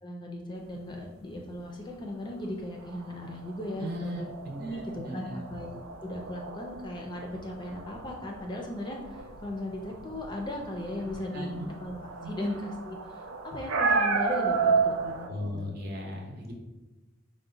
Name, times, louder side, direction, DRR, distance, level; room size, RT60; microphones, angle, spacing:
voice 1, 0.0-4.3 4.6-11.5 11.8-15.7, left 1 dB, 20° left, 1 dB, 0.4 m, -37 dB
sound 1, 2.8-15.3, right 5 dB, 80° right, 0.5 m, -32 dB
voice 2, 3.8-5.4 11.3-11.7 12.2-12.3 15.2-16.5, left 1 dB, 45° right, 0 dB, 0.7 m, -37 dB
4.8 x 2.1 x 3.8 m, 1.1 s
head